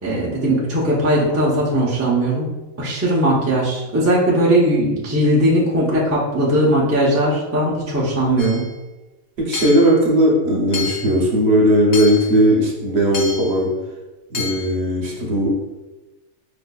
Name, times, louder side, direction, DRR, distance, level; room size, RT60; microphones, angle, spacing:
voice 1, 0.0-2.5 2.8-8.6, right 1 dB, 20° right, -6 dB, 0.4 m, -18 dB
Hammer / Chink clink, 8.4-8.7 9.5-10.0 10.7-11.2 11.9-12.4 13.1-13.6 14.3-14.7, left 6 dB, 85° left, 1.2 m, -29 dB
voice 2, 9.4-13.7 14.3-15.5, equal, 55° right, -3 dB, 1.0 m, -17 dB
4.9 x 2.5 x 2.3 m, 1.1 s
omnidirectional pair, 1.4 m